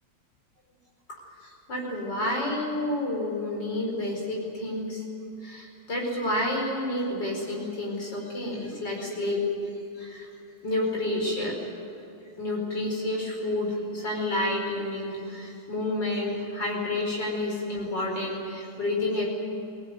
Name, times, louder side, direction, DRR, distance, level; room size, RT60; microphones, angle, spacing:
voice 1, 1.1-5.0 5.4-9.4 10.0-10.3 10.6-11.5 12.4-19.3, left 1 dB, 65° left, -1 dB, 5.7 m, -30 dB
23.5 x 18.5 x 9.5 m, 2.8 s
omnidirectional pair, 2.1 m